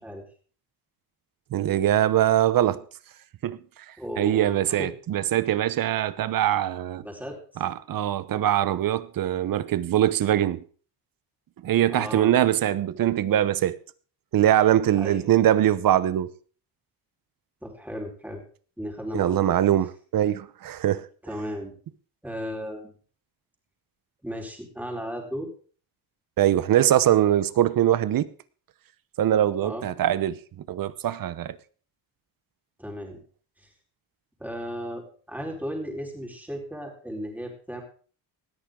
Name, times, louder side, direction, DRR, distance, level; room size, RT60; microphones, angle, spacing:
voice 1, 1.5-2.8 3.4-3.6 4.2-7.0 7.6-10.6 11.6-13.8 14.3-16.3 19.1-21.1 26.4-28.3 29.2-30.4 30.7-31.6, right 12 dB, 55° right, 0.9 m, -22 dB
voice 2, 4.0-4.9 7.0-7.4 11.9-12.3 14.9-15.3 17.6-18.4 18.8-19.5 21.2-21.7 22.2-23.0 24.2-25.5 29.6-29.8 32.8-33.2 33.6-33.7 34.4-35.0 35.3-37.8, equal, 5° right, 4.5 m, -35 dB
19.0 x 13.5 x 3.8 m
cardioid pair, 125°, 40 cm